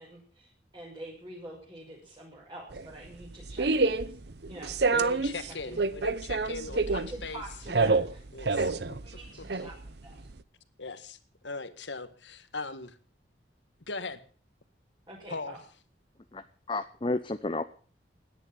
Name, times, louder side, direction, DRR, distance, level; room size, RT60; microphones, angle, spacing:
voice 1, 0.0-4.1 4.5-5.8 6.6-8.2 9.0-10.3 15.1-15.6, right 1 dB, 25° right, -4 dB, 6.2 m, -46 dB
sound 1, 2.7-10.4, right 3 dB, 65° right, 0.9 m, -28 dB
voice 2, 4.9-7.4 8.3-8.7 9.4-9.5 10.8-11.2 11.4-12.9 13.9-14.2 15.3-15.6, left 3 dB, 80° left, 11 dB, 1.8 m, -39 dB
voice 3, 16.3-17.6, left 2 dB, 30° left, 10 dB, 0.7 m, -32 dB
17.0 x 10.5 x 7.6 m, 0.43 s
head